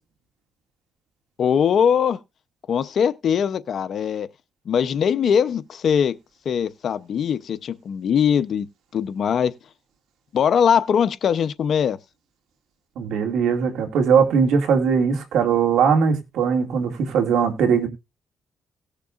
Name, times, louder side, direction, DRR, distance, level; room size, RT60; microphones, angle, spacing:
voice 1, 1.4-2.2 2.7-4.3 4.7-6.1 6.5-8.7 8.9-9.5 10.3-12.0, left 7 dB, 60° left, 0.7 m, -21 dB
voice 2, 13.0-17.9, right 6 dB, 80° right, 2.2 m, -20 dB
18.0 x 6.7 x 2.5 m
cardioid pair, 90°, 0 cm